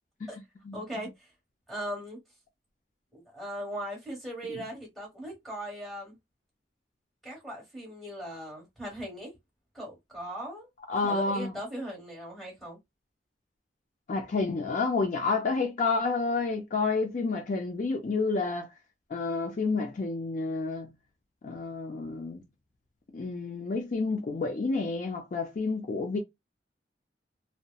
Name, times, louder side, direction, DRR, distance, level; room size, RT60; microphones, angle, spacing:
voice 1, 0.7-1.3 1.7-2.2 3.1-6.2 7.2-9.3 9.7-10.7 11.0-12.8, equal, ahead, 1.2 m, -39 dB
voice 2, 10.9-11.5 14.1-18.7 19.1-20.9 21.4-22.4 23.1-26.2, left 3 dB, 45° left, 0.4 m, -29 dB
2.8 x 2.1 x 2.2 m
head